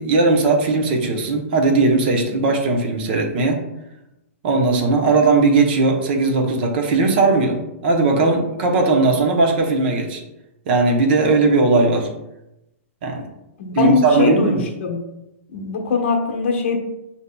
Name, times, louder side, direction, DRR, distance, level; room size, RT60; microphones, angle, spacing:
voice 1, 0.0-3.6 4.4-10.2 10.7-12.1 13.0-13.2 13.7-14.6, right 3 dB, 45° right, 2 dB, 0.7 m, -18 dB
voice 2, 13.6-15.0 15.5-16.8, left 5 dB, 55° left, 1 dB, 0.9 m, -21 dB
6.5 x 2.8 x 2.2 m, 0.90 s
hypercardioid pair, 160°, 8 cm